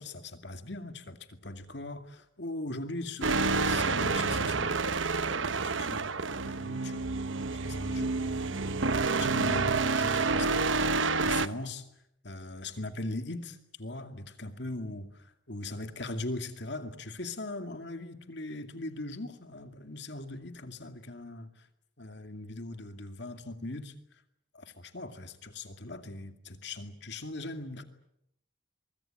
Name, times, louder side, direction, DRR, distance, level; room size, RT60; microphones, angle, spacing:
voice 1, 0.0-3.4 3.6-7.1 7.6-11.9 12.2-21.7 22.0-23.9 24.5-27.8, left 2 dB, 60° left, 8 dB, 2.4 m, -40 dB
sound 1, 3.2-11.5, right 3 dB, 75° right, 1.1 m, -28 dB
23.5 x 23.0 x 9.0 m, 0.78 s
head